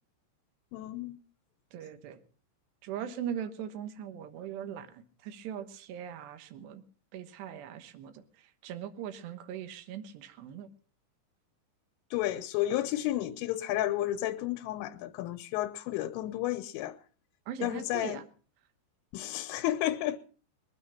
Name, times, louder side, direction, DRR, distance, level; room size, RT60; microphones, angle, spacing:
voice 1, 0.7-1.2 12.1-17.0 17.6-18.2 19.1-20.2, left 14 dB, 85° left, 3.3 m, -32 dB
voice 2, 1.7-2.2 2.8-6.8 7.1-10.7 17.5-18.2, right 9 dB, 70° right, 3.0 m, -40 dB
21.5 x 9.7 x 5.7 m
omnidirectional pair, 5.7 m